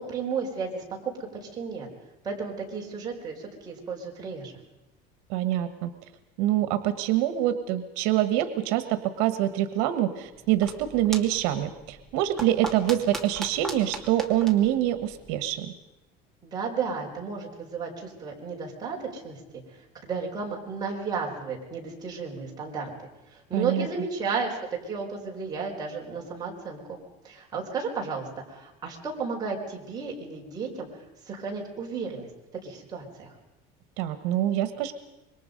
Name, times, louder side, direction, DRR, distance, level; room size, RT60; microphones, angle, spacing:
voice 1, 0.0-1.9 2.2-4.5 16.4-19.4 20.0-24.6 24.9-27.0 27.2-30.9 31.3-32.3 32.6-33.3, right 5 dB, 20° right, -2 dB, 4.9 m, -33 dB
voice 2, 5.3-5.9 6.4-15.7 23.5-23.9 34.0-34.9, right 13 dB, 80° right, 11 dB, 1.5 m, -25 dB
sound 1, 10.3-15.6, right 2 dB, ahead, 2.4 m, -40 dB
26.0 x 22.5 x 5.3 m, 0.97 s
cardioid pair, 165°, 20 cm